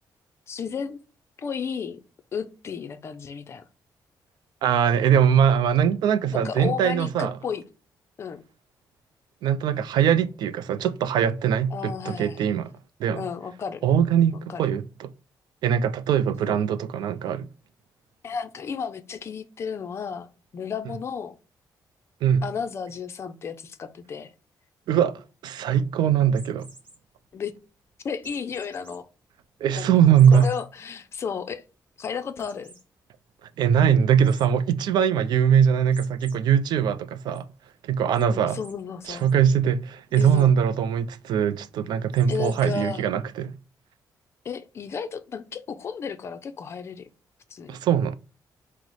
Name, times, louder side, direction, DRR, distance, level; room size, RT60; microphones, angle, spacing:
voice 1, 0.5-1.0 1.4-2.0 2.3-3.6 6.3-7.6 8.2-8.4 11.7-12.5 13.2-13.8 14.5-14.6 16.5-16.6 18.2-20.3 20.5-21.4 22.4-24.3 27.3-27.5 28.0-29.1 29.7-31.6 32.0-32.7 38.3-39.3 40.2-40.5 42.3-43.0 44.4-47.1 47.5-47.8, left 6 dB, 40° left, 0.4 m, -33 dB
voice 2, 4.6-7.4 9.4-12.7 13.0-13.3 13.8-15.1 15.6-17.5 22.2-22.4 24.9-26.7 29.6-30.5 33.6-37.5 37.8-38.6 39.1-43.6 47.7-48.2, right 8 dB, 80° right, 0.4 m, -21 dB
sound 1, 26.3-27.0 28.2-29.0 29.4-29.5 30.1-30.6 31.1-31.2 31.5-31.6 32.4-32.8 34.2-34.5 35.9-36.3 36.8-37.4 38.1-38.2 38.6-38.7 39.0-39.3 40.1-40.5 42.1-42.8, right 2 dB, 25° right, 1.1 m, -49 dB
4.6 x 2.0 x 3.9 m
wide cardioid pair, 175°, 7 cm